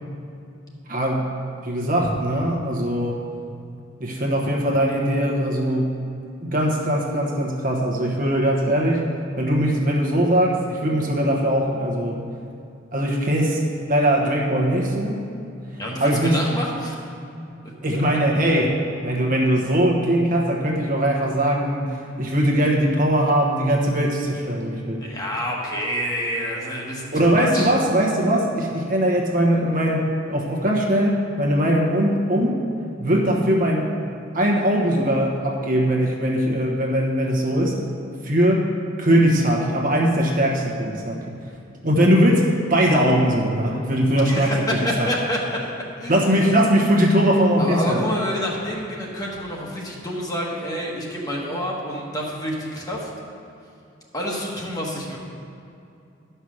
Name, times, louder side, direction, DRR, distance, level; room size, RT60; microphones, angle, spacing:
voice 1, 0.9-1.3 1.6-3.2 4.0-6.0 6.4-9.1 9.4-12.2 12.9-15.3 16.0-16.4 17.8-25.1 27.1-32.6 33.0-33.9 34.3-37.8 38.2-41.3 41.8-45.1 46.1-48.1, equal, 45° right, -1 dB, 1.2 m, -21 dB
voice 2, 15.8-17.0 25.0-27.7 44.2-45.7 46.0-46.4 47.6-53.1 54.1-55.2, equal, 20° left, -3 dB, 1.4 m, -28 dB
11.0 x 5.7 x 6.3 m, 2.6 s
head